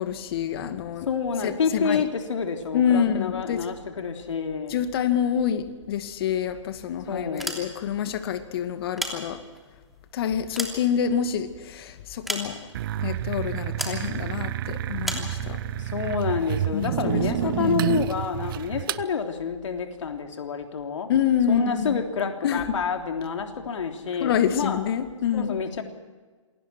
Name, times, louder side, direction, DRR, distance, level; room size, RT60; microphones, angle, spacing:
voice 1, 0.0-1.1 1.4-2.1 2.7-3.7 4.7-9.4 10.1-12.6 13.0-15.6 16.7-17.8 21.1-22.0 22.4-22.8 24.2-25.5, left 8 dB, 50° left, 8 dB, 2.3 m, -27 dB
voice 2, 1.1-4.8 7.1-7.6 15.8-21.1 21.5-24.8 25.3-25.8, left 6 dB, 70° left, 4 dB, 3.4 m, -28 dB
sound 1, 7.2-8.1 8.7-9.7 10.2-11.5 12.3-12.9 13.8-14.1 15.0-15.3, equal, ahead, 3.1 m, -33 dB
sound 2, 12.7-19.0, right 13 dB, 45° right, 0.7 m, -29 dB
28.0 x 22.5 x 4.6 m, 1.4 s
hypercardioid pair, 135°, 16 cm